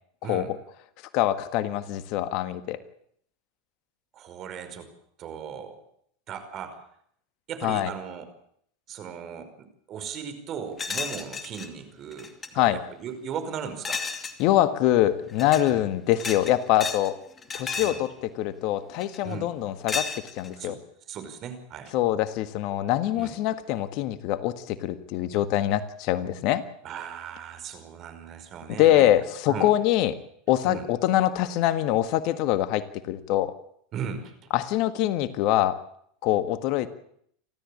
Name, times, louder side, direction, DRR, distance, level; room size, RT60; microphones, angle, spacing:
voice 1, 0.2-0.6 1.1-2.8 7.6-7.9 12.5-12.8 14.4-17.2 17.5-20.1 20.4-20.8 21.9-26.6 28.7-30.2 30.5-33.5 34.5-35.8 36.2-36.9, left 13 dB, 55° left, 12 dB, 1.7 m, -24 dB
voice 2, 4.1-4.9 5.2-5.8 6.3-6.8 7.5-8.3 8.9-14.0 15.7-15.9 17.8-18.0 19.2-19.5 20.6-20.8 21.1-21.9 23.2-23.3 26.8-29.1 29.5-29.7 30.6-30.9 33.9-34.5, right 7 dB, 45° right, 9 dB, 5.0 m, -37 dB
sound 1, 10.8-11.7 12.1-12.5 13.8-14.4 15.3-15.7 16.1-17.1 17.4-18.0 19.0-19.3 19.9-20.5, left 5 dB, 25° left, 2.6 m, -33 dB
29.0 x 13.5 x 8.7 m, 0.68 s
hypercardioid pair, 90°, 0 cm